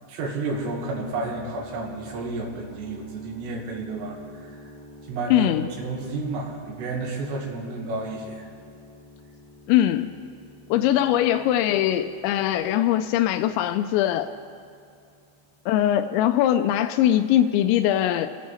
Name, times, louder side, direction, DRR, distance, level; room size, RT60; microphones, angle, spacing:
voice 1, 0.1-4.2 4.4-4.5 5.1-5.5 5.8-8.5, right 3 dB, 70° right, -2 dB, 4.0 m, -31 dB
sound 1, 0.5-16.4, left 1 dB, 45° left, 3.2 m, -48 dB
voice 2, 5.3-5.7 9.7-10.1 10.7-14.3 15.7-18.3, left 12 dB, 85° left, 8 dB, 2.9 m, -21 dB
28.0 x 9.6 x 4.2 m, 2.3 s
omnidirectional pair, 5.1 m